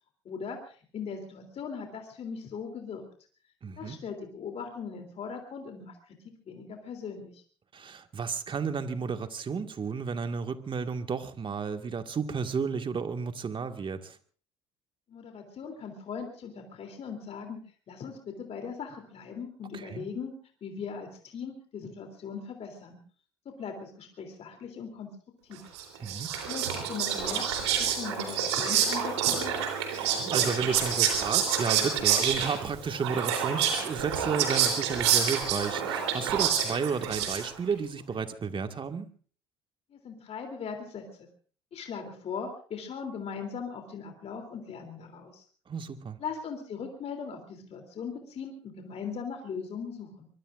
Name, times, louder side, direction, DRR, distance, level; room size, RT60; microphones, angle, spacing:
voice 1, 0.2-3.0 3.8-7.4 15.1-17.6 17.9-20.3 20.6-23.0 23.4-25.1 25.4-25.6 26.5-29.7 39.9-41.0 41.7-45.4 46.2-50.3, left 6 dB, 45° left, 4 dB, 3.3 m, -39 dB
voice 2, 3.6-4.0 7.7-14.2 19.7-20.0 26.0-26.3 29.9-39.1 45.7-46.2, right 5 dB, 35° right, 7 dB, 2.0 m, -32 dB
Whispering, 25.8-37.7, right 8 dB, 80° right, 3.7 m, -28 dB
23.5 x 22.0 x 2.6 m, 0.43 s
hypercardioid pair, 60°, 14 cm